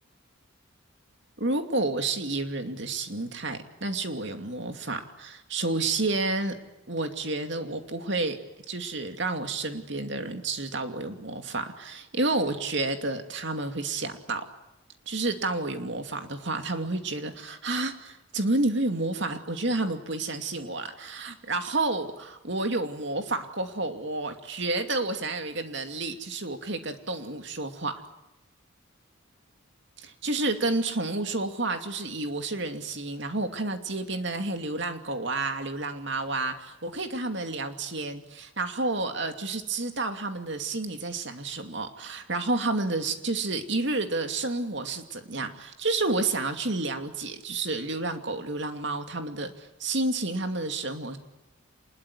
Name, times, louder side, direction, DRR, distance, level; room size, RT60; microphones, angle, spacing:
voice 1, 1.4-6.5 6.9-8.4 8.7-14.4 15.1-28.0 30.0-51.2, right 2 dB, 55° right, 6 dB, 2.6 m, -30 dB
27.0 x 21.0 x 9.6 m, 0.94 s
head